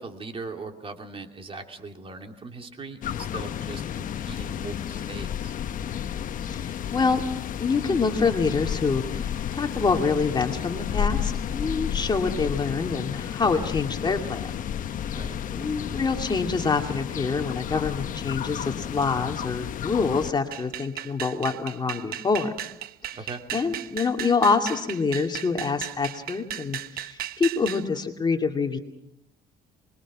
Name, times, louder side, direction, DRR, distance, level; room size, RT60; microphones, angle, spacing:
voice 1, 0.0-5.6 15.1-15.4 23.1-23.4, right 3 dB, 35° right, 4 dB, 3.0 m, -40 dB
sound 1, 3.0-20.3, left 9 dB, 50° left, 1.1 m, -32 dB
voice 2, 6.4-7.2 7.6-14.5 15.1-15.2 15.5-22.5 23.1-23.2 23.5-28.8, left 4 dB, 25° left, 4 dB, 2.4 m, -26 dB
sound 2, 20.5-27.9, right 12 dB, 60° right, 0.9 m, -36 dB
25.5 x 22.5 x 6.2 m, 0.81 s
cardioid pair, 110°, 17 cm